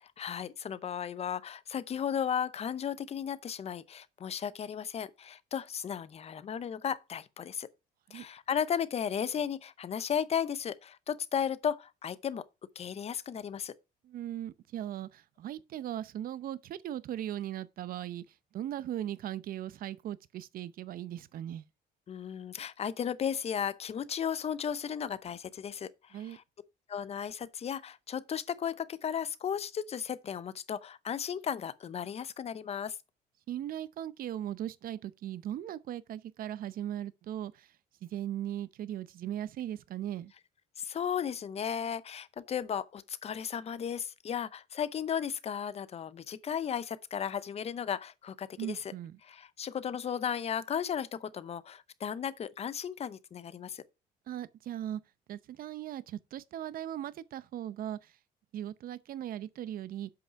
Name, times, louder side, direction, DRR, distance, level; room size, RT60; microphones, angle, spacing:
voice 1, 0.0-7.7 8.1-12.4 12.8-13.7 22.1-26.4 26.9-33.0 40.8-48.9 49.2-53.8, left 8 dB, 40° left, 0.7 m, -35 dB
voice 2, 14.0-18.2 18.5-21.6 26.1-26.4 33.5-37.7 38.0-40.3 48.6-49.2 54.3-55.0 55.3-58.1 58.5-60.1, right 11 dB, 60° right, 0.7 m, -38 dB
7.9 x 5.5 x 5.7 m
cardioid pair, 110°, 17 cm